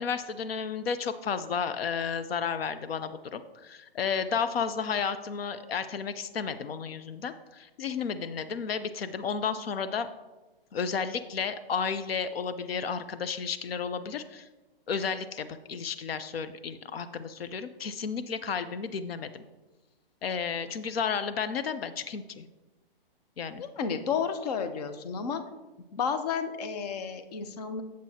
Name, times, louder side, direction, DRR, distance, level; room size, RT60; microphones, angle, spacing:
voice 1, 0.0-10.1 10.7-14.5 14.9-19.4 20.2-22.5 23.4-23.6, left 6 dB, 80° left, 11 dB, 0.6 m, -32 dB
voice 2, 23.6-25.4 26.0-27.8, left 6 dB, 40° left, 9 dB, 0.7 m, -31 dB
9.0 x 7.6 x 2.8 m, 1.1 s
hypercardioid pair, 150°, 30 cm